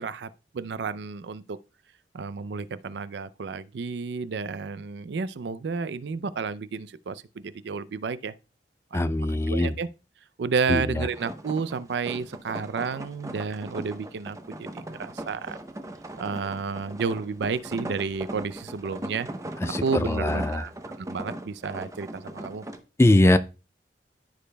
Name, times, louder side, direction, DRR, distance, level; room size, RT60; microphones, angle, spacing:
voice 1, 0.0-1.6 2.1-8.3 8.9-9.9 10.4-15.6 16.2-19.3 19.8-20.7 21.0-22.6, right 5 dB, 70° right, 0.4 m, -31 dB
voice 2, 8.9-9.7 10.7-10.8 19.6-20.6 23.0-23.4, left 1 dB, 15° left, 0.4 m, -21 dB
sound 1, 11.1-22.8, right 1 dB, 20° right, 0.7 m, -39 dB
14.0 x 5.2 x 2.2 m
head